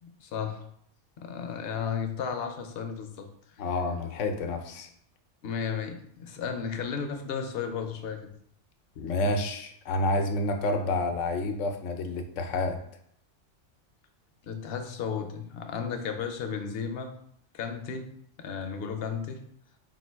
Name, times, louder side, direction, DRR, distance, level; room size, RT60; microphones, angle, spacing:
voice 1, 0.0-0.6 1.2-3.3 5.4-8.3 14.4-17.1 17.5-18.0 18.4-19.4, left 6 dB, 65° left, 6 dB, 0.7 m, -34 dB
voice 2, 3.6-4.9 9.0-12.8, left 2 dB, 90° left, 6 dB, 0.9 m, -29 dB
3.6 x 2.5 x 4.4 m, 0.68 s
omnidirectional pair, 1.2 m